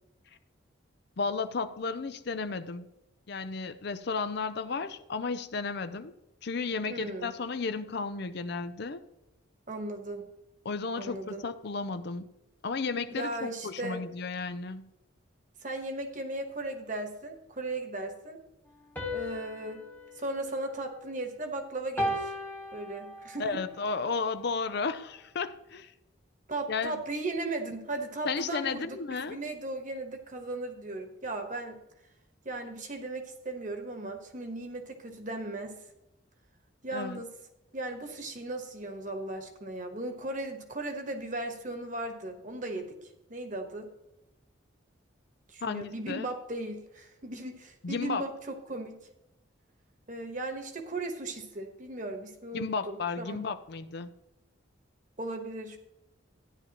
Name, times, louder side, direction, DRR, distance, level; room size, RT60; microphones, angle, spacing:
voice 1, 1.2-2.9 3.3-6.1 6.4-9.0 10.6-12.3 12.6-14.9 23.4-25.9 26.7-27.0 28.2-29.4 36.9-37.2 45.6-46.3 47.8-48.3 52.5-54.1, left 4 dB, 55° left, 11 dB, 0.5 m, -33 dB
voice 2, 6.9-7.3 9.7-10.3 10.9-11.4 13.1-14.1 15.6-18.4 19.1-19.9 20.1-22.3 22.7-23.6 26.5-31.8 32.4-35.8 36.8-37.3 37.7-43.0 43.3-43.9 45.5-49.1 50.1-53.4 55.2-55.8, right 2 dB, 40° right, 5 dB, 1.3 m, -37 dB
sound 1, 19.0-21.4 22.0-23.5, left 1 dB, 10° left, 1.1 m, -36 dB
13.0 x 10.5 x 3.0 m, 0.91 s
head